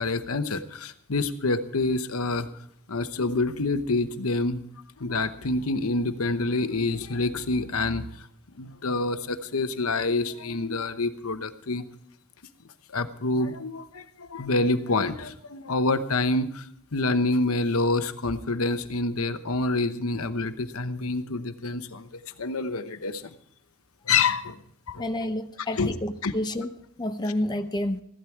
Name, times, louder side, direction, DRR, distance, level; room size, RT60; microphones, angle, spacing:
voice 1, 0.0-2.5 2.9-4.6 5.0-8.3 8.6-11.8 12.9-23.3 24.0-24.6 24.9-25.0 25.8-25.9 26.2-26.3, left 3 dB, 75° left, 10 dB, 1.0 m, -27 dB
voice 2, 25.0-26.7 27.0-28.0, left 1 dB, 20° left, 7 dB, 0.6 m, -29 dB
15.5 x 12.0 x 4.6 m, 0.71 s
head